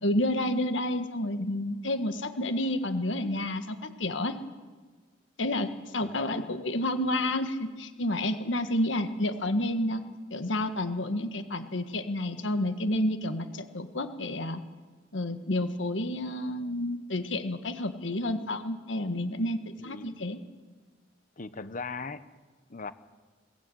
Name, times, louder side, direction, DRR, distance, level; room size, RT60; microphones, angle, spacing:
voice 1, 0.0-4.4 5.4-10.0 10.3-14.6 15.1-20.4, left 1 dB, 85° left, 9 dB, 1.6 m, -30 dB
voice 2, 6.0-6.6 18.2-18.5 19.8-20.1 21.4-22.3 22.7-22.9, left 4 dB, 45° left, 13 dB, 1.1 m, -39 dB
22.5 x 17.0 x 9.2 m, 1.4 s
head